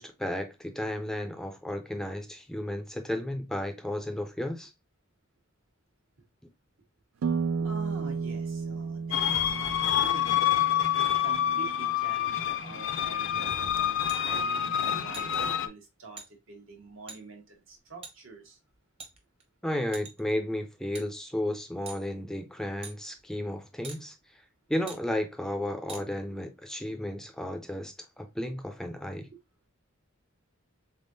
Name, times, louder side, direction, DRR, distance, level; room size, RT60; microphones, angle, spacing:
voice 1, 0.0-4.7 19.6-24.1 24.7-29.3, left 1 dB, 5° left, 0.4 m, -33 dB
sound 1, 7.2-12.8 13.3-14.2, right 5 dB, 90° right, 0.4 m, -34 dB
voice 2, 7.6-10.4 10.9-14.0 14.2-18.6 29.3-29.4, right 4 dB, 70° right, 1.3 m, -46 dB
sound 2, 9.1-15.7, left 10 dB, 65° left, 0.4 m, -27 dB
sound 3, 14.1-14.2 15.1-15.4 16.2-16.3 17.1-17.2 18.0-18.1 19.0-19.4 19.9-20.3 20.9-21.1 21.9-22.0 22.8-22.9 23.8-24.0 24.9-25.0 25.9-26.0, right 4 dB, 30° right, 0.8 m, -43 dB
3.6 x 3.5 x 2.6 m
head